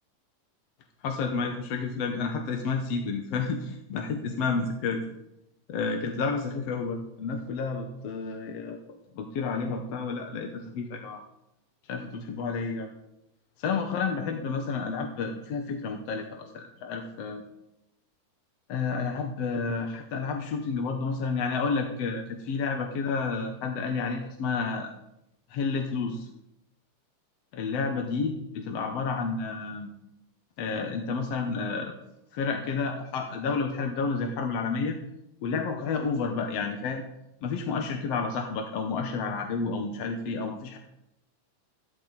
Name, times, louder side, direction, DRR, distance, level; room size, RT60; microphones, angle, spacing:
voice 1, 1.0-5.0 5.7-8.8 9.1-11.2 11.9-12.9 13.6-17.4 18.7-24.9 25.5-26.3 27.5-29.9 30.6-31.9 32.3-35.0 35.4-37.0 37.4-40.8, left 4 dB, 60° left, 3 dB, 1.9 m, -30 dB
14.5 x 13.0 x 4.1 m, 0.86 s
omnidirectional pair, 3.7 m